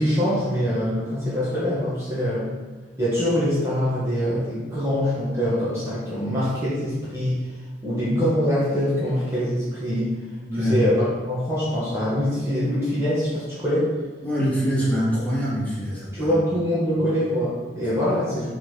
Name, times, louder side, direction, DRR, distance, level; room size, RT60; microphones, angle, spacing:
voice 1, 0.0-2.5 3.0-7.4 7.8-10.1 10.5-13.9 16.1-18.5, equal, 15° right, -10 dB, 1.7 m, -24 dB
voice 2, 10.5-10.8 14.2-16.3, equal, 10° left, -9 dB, 2.4 m, -24 dB
6.8 x 3.8 x 5.7 m, 1.3 s
head